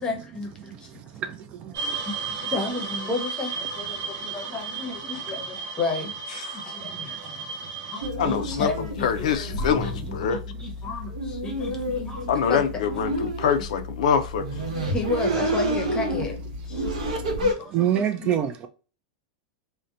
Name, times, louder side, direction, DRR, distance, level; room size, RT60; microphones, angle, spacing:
voice 1, 0.0-0.7 2.1-2.2 2.4-6.2 6.5-12.6 14.8-16.4 16.7-17.1 17.4-18.3, left 3 dB, 20° left, 0.7 m, -33 dB
sound 1, 1.7-8.1, right 5 dB, 45° right, 0.7 m, -33 dB
voice 2, 4.0-4.5 5.0-5.1 6.8-7.9 11.7-12.3 17.0-17.3 17.7-18.7, right 10 dB, 30° right, 0.3 m, -29 dB
sound 2, 8.0-17.5, equal, 85° right, 0.9 m, -29 dB
voice 3, 8.2-10.4 12.3-14.5, left 7 dB, 80° left, 0.4 m, -25 dB
2.7 x 2.1 x 2.4 m
supercardioid pair, 140°, 4 cm